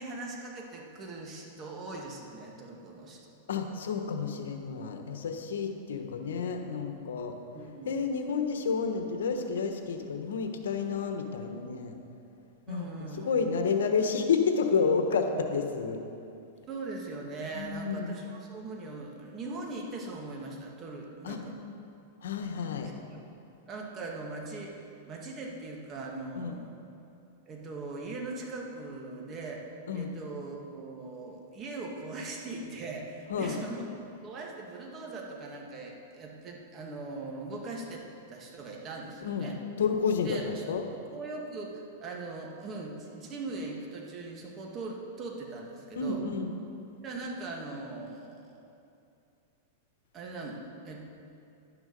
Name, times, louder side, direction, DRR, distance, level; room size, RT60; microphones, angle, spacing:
voice 1, 0.0-3.3 7.5-8.0 12.7-13.3 13.5-13.7 16.7-21.5 22.8-23.2 23.7-26.8 27.5-29.7 29.9-33.9 34.2-38.0 38.3-39.6 40.2-40.7 41.1-46.2 47.0-48.6 50.1-51.0, right 3 dB, 30° right, 0 dB, 1.9 m, -40 dB
voice 2, 3.5-7.3 7.9-11.9 12.7-16.0 17.5-18.1 21.2-21.4 22.2-22.9 26.4-26.6 29.9-30.1 33.3-33.6 39.2-39.5 39.8-40.8 45.9-46.5, left 5 dB, 85° left, 5 dB, 1.2 m, -30 dB
11.5 x 9.7 x 5.3 m, 2.6 s
hypercardioid pair, 130°, 0 cm